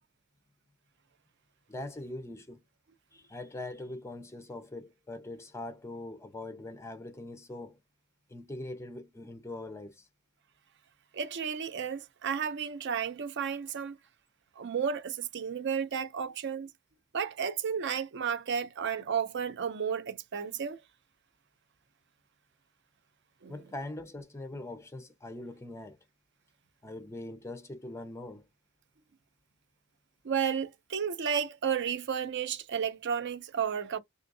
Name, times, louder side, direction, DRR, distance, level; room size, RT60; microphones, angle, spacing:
voice 1, 1.7-2.6 3.1-7.8 8.3-10.1 23.5-26.0 26.8-28.4, left 2 dB, 15° left, 0.4 m, -42 dB
voice 2, 11.1-14.0 14.6-16.7 17.1-20.8 23.4-23.5 30.2-34.0, right 7 dB, 55° right, 0.5 m, -32 dB
3.5 x 2.7 x 2.6 m
head